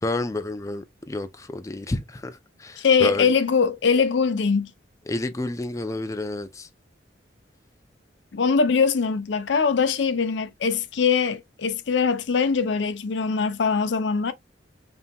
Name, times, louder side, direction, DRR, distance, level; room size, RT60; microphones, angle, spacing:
voice 1, 0.0-3.3 5.1-6.7, left 2 dB, 15° left, 0.4 m, -30 dB
voice 2, 2.8-4.7 8.3-14.3, left 5 dB, 70° left, 0.5 m, -22 dB
5.4 x 2.8 x 2.2 m
head